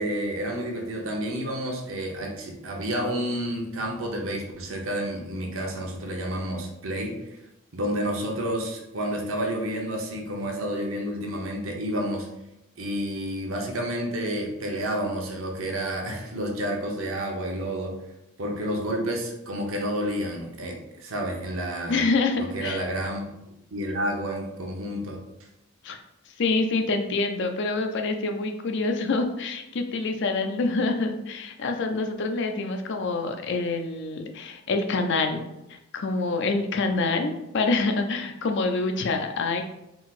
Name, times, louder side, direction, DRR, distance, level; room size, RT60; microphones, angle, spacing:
voice 1, 0.0-7.1 7.7-12.3 12.8-18.0 18.4-22.0 22.4-23.2 23.7-25.2, equal, 70° right, 1 dB, 0.9 m, -30 dB
voice 2, 21.9-22.8 25.8-26.0 26.4-39.6, left 3 dB, 60° left, 5 dB, 0.5 m, -26 dB
4.4 x 3.9 x 2.5 m, 0.89 s
head